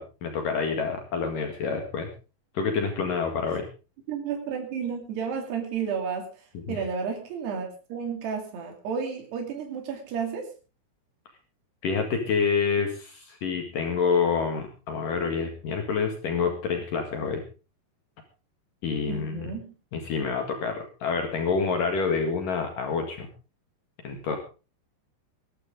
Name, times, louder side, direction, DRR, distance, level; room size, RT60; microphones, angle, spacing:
voice 1, 0.0-2.1 2.6-3.7 6.7-6.8 11.8-17.4 18.8-19.5 19.9-23.3 24.0-24.4, left 5 dB, 60° left, 4 dB, 3.5 m, -27 dB
voice 2, 4.1-10.5 19.1-19.7, right 6 dB, 85° right, 2 dB, 4.9 m, -32 dB
20.5 x 13.0 x 3.7 m, 0.34 s
omnidirectional pair, 4.6 m